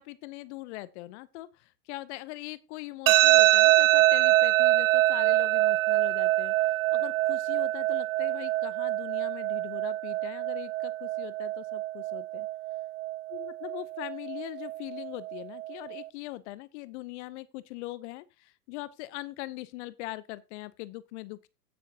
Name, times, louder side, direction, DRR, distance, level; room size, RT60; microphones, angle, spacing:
voice 1, 0.0-12.5 13.3-21.5, left 18 dB, 45° left, 0.7 m, -41 dB
sound 1, 3.1-16.0, right 17 dB, 55° right, 0.6 m, -25 dB
16.0 x 6.4 x 2.8 m
hypercardioid pair, 100°, 48 cm